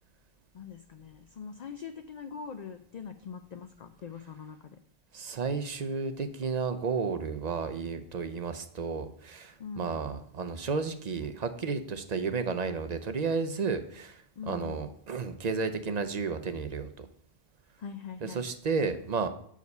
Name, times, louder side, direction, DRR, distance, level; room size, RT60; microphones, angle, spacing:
voice 1, 0.5-4.8 9.6-9.9 11.2-11.3 14.4-14.9 17.8-18.5, left 6 dB, 55° left, 7 dB, 0.5 m, -42 dB
voice 2, 5.1-17.1 18.2-19.3, right 5 dB, 45° right, 10 dB, 0.6 m, -32 dB
7.9 x 5.0 x 5.3 m, 0.65 s
omnidirectional pair, 1.1 m